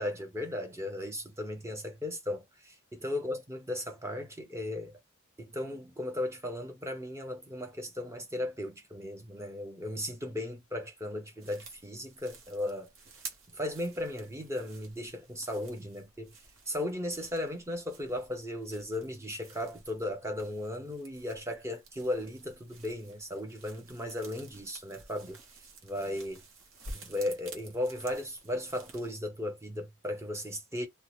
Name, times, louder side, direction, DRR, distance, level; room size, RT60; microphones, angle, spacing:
voice 1, 0.0-5.0 5.4-12.9 13.5-16.3 16.7-25.4 25.8-26.4 26.9-30.9, left 1 dB, 15° right, 0.7 m, -36 dB
sound 1, 11.4-29.1, right 3 dB, 65° right, 0.9 m, -52 dB
2.7 x 2.1 x 3.0 m
head